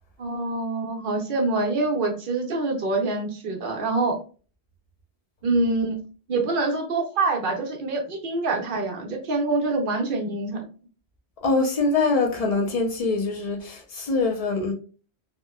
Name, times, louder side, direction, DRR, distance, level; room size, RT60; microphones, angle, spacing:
voice 1, 0.2-4.2 5.4-6.0 6.3-10.6, right 3 dB, 55° right, 0.8 m, -25 dB
voice 2, 11.4-14.7, left 3 dB, 50° left, 0.5 m, -24 dB
2.9 x 2.1 x 2.2 m
omnidirectional pair, 1.1 m